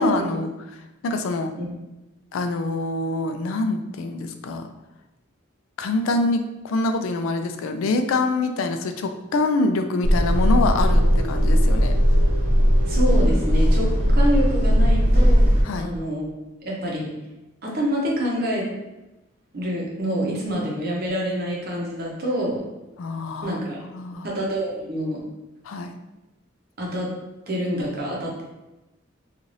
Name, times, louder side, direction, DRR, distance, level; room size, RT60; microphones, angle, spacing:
voice 1, 0.0-1.5 2.3-4.7 5.8-11.9 15.6-15.9 23.0-24.3 25.6-25.9, left 3 dB, 85° left, 7 dB, 0.3 m, -25 dB
sound 1, 10.0-15.6, equal, 30° right, 1.2 m, -18 dB
voice 2, 12.9-15.5 15.8-16.3 16.6-17.1 17.6-18.7 19.5-22.6 23.4-23.8 24.2-25.2 26.8-27.1 27.5-28.4, equal, 50° right, -3 dB, 0.7 m, -26 dB
2.6 x 2.4 x 3.1 m, 1.0 s
head